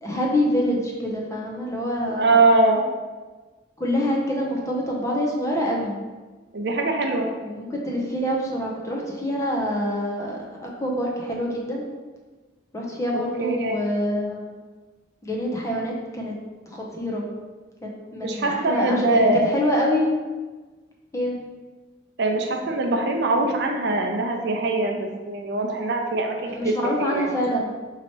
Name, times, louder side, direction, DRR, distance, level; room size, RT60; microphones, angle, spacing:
voice 1, 0.0-2.4 3.8-6.0 7.4-11.9 12.7-14.6 15.2-16.3 16.7-17.3 17.8-20.1 21.1-21.4 26.5-27.7, equal, 15° left, -2 dB, 0.6 m, -26 dB
voice 2, 2.2-2.8 6.5-7.3 13.4-13.8 18.2-19.4 22.2-27.3, right 2 dB, 65° right, 2 dB, 0.5 m, -22 dB
3.0 x 2.8 x 4.4 m, 1.3 s
head